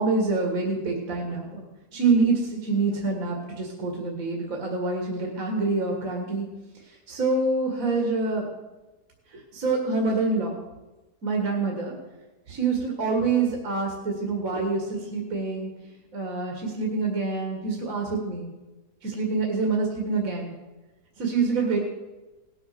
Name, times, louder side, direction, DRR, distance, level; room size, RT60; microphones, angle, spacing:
voice 1, 0.0-1.6 1.9-6.5 7.1-8.5 9.3-10.6 11.2-12.0 12.5-15.7 16.1-18.5 19.0-20.5 21.2-21.8, right 3 dB, 55° right, 1 dB, 2.2 m, -26 dB
18.5 x 6.3 x 6.8 m, 1.1 s
omnidirectional pair, 1.7 m